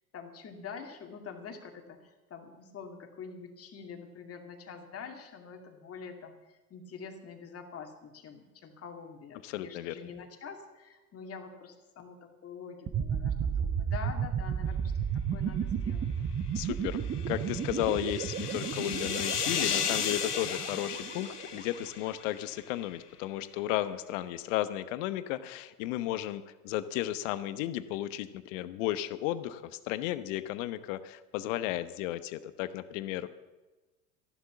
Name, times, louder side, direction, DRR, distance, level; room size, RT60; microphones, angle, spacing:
voice 1, 0.1-16.1, left 5 dB, 30° left, 4 dB, 2.4 m, -46 dB
voice 2, 9.4-10.1 16.5-33.3, left 14 dB, 55° left, 14 dB, 1.0 m, -34 dB
sound 1, 12.9-21.7, right 7 dB, 25° right, 0.9 m, -33 dB
sound 2, 16.9-22.5, left 7 dB, 90° left, 1.0 m, -35 dB
14.0 x 11.5 x 7.2 m, 1.2 s
figure-of-eight pair, 80°, 45 cm